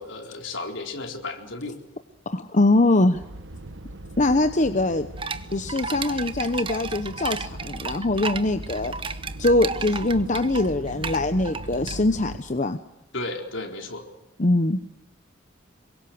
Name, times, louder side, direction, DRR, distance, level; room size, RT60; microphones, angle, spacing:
voice 1, 0.0-1.8 13.1-14.1, left 2 dB, 70° left, 3 dB, 4.2 m, -33 dB
voice 2, 2.3-3.2 4.2-5.1 5.5-12.8 14.4-14.8, left 2 dB, 40° left, 9 dB, 0.9 m, -23 dB
sound 1, 3.1-12.4, right 1 dB, 70° right, 1.3 m, -39 dB
sound 2, 5.2-12.3, right 5 dB, 25° right, 1.0 m, -33 dB
26.5 x 23.0 x 7.9 m, 0.88 s
head